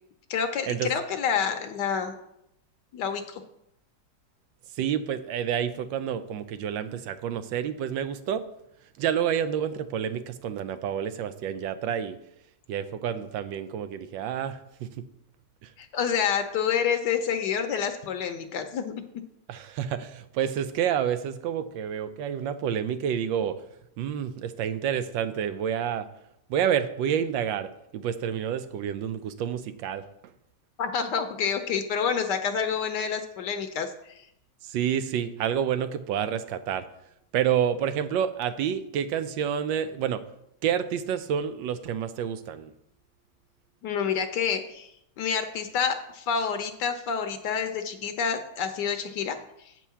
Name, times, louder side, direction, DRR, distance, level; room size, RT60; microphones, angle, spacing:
voice 1, 0.3-2.1 2.9-3.4 15.8-18.9 30.8-34.1 43.8-44.9 45.2-49.7, left 7 dB, 75° left, 7 dB, 1.3 m, -28 dB
voice 2, 4.8-8.4 9.0-12.2 12.7-15.0 15.6-15.7 19.5-23.6 24.0-26.1 26.5-30.1 34.6-36.8 37.3-40.2 40.6-42.7, right 9 dB, 90° right, 11 dB, 1.4 m, -29 dB
8.5 x 4.6 x 6.9 m, 0.80 s
omnidirectional pair, 2.0 m